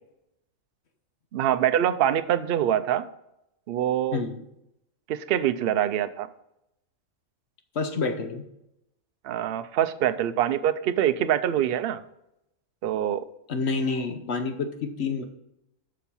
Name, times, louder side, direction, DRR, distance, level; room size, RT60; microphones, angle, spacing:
voice 1, 1.3-3.1 3.7-4.2 5.1-6.3 9.2-12.0 12.8-13.2, right 10 dB, 65° right, 12 dB, 0.6 m, -24 dB
voice 2, 4.1-4.4 7.7-8.5 13.5-15.2, left 4 dB, 55° left, 7 dB, 1.0 m, -28 dB
7.1 x 6.1 x 5.5 m, 0.83 s
omnidirectional pair, 1.4 m